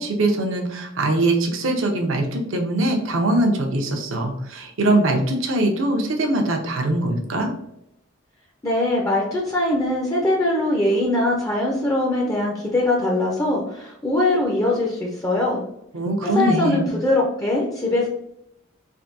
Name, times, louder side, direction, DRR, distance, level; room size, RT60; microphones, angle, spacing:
voice 1, 0.0-7.5 15.9-16.9, right 1 dB, 70° right, 3 dB, 0.6 m, -22 dB
voice 2, 8.6-15.6 16.2-18.1, left 1 dB, 15° left, -1 dB, 0.4 m, -22 dB
3.4 x 2.6 x 2.5 m, 0.79 s
head